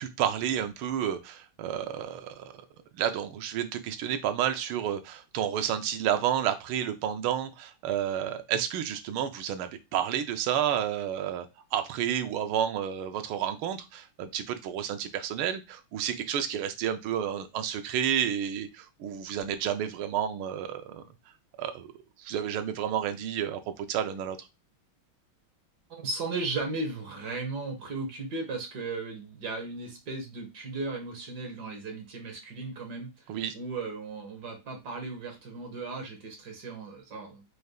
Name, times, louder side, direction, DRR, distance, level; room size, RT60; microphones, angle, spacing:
voice 1, 0.0-2.6 2.9-11.5 11.7-21.0 21.6-21.9 22.2-24.5 33.3-33.5, right 10 dB, 85° right, 8 dB, 1.5 m, -30 dB
voice 2, 25.9-33.1 33.5-37.4, right 3 dB, 55° right, 3 dB, 1.6 m, -36 dB
5.0 x 3.3 x 2.3 m, 0.25 s
omnidirectional pair, 2.3 m